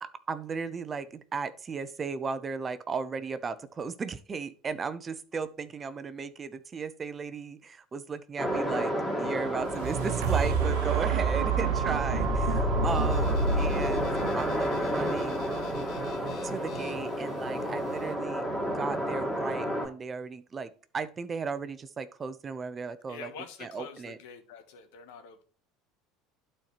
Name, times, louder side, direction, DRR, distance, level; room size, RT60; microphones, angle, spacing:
voice 1, 0.0-8.9 9.2-14.1 14.4-15.5 16.4-18.5 18.7-23.3 23.6-24.2, right 5 dB, 30° right, 13 dB, 0.7 m, -35 dB
sound 1, 8.4-19.9, equal, 5° left, 2.3 m, -32 dB
sound 2, 9.4-17.5 18.0-18.1, right 4 dB, 75° right, 0.9 m, -29 dB
sound 3, 12.8-18.1, left 5 dB, 55° left, 2.1 m, -46 dB
voice 2, 23.1-25.4, left 6 dB, 75° left, 7 dB, 1.4 m, -46 dB
11.5 x 4.4 x 3.3 m, 0.41 s
hypercardioid pair, 80°, 0 cm